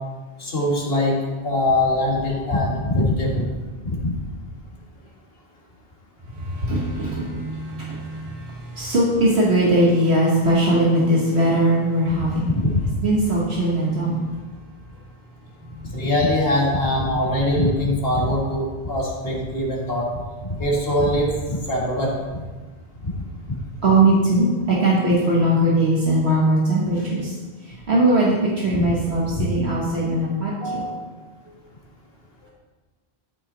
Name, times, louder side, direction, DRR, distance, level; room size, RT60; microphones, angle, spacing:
voice 1, 0.4-1.2 1.4-3.5 3.8-4.1 12.5-12.9 15.9-20.1 20.4-22.4 28.7-28.8 29.4-29.5 30.6-31.0, left 1 dB, 65° left, -2 dB, 2.2 m, -22 dB
voice 2, 6.3-12.5 13.0-14.3 23.8-27.3 27.6-30.9, right 1 dB, 75° right, -5 dB, 1.7 m, -20 dB
13.5 x 5.6 x 4.1 m, 1.3 s
omnidirectional pair, 1.1 m